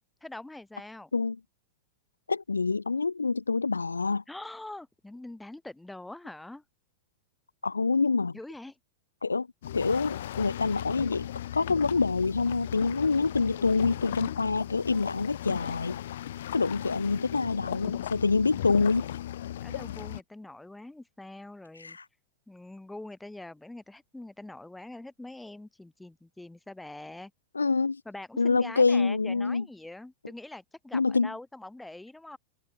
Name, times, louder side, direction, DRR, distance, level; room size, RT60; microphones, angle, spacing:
voice 1, 0.2-1.1 4.3-6.6 8.3-8.7 19.6-22.0 22.5-27.3 28.0-32.4, left 2 dB, 5° left, 6.6 m, -44 dB
voice 2, 2.3-4.2 7.6-8.3 9.2-9.5 9.7-16.0 16.5-19.1 21.8-22.0 27.5-28.0 28.4-29.7 30.9-31.3, left 4 dB, 80° left, 0.6 m, -26 dB
sound 1, 9.6-20.2, left 12 dB, 60° left, 2.4 m, -37 dB
figure-of-eight pair, 90°, 0 cm